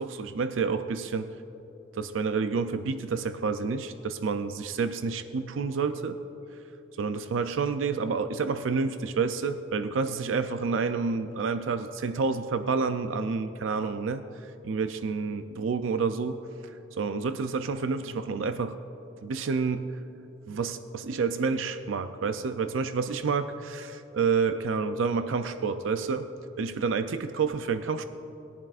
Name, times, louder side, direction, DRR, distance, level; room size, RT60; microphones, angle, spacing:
voice 1, 0.0-1.3 1.9-6.2 6.9-18.8 19.2-19.9 20.5-26.3 26.6-28.0, right 5 dB, 85° right, 9 dB, 0.4 m, -29 dB
20.0 x 11.0 x 2.5 m, 3.0 s
head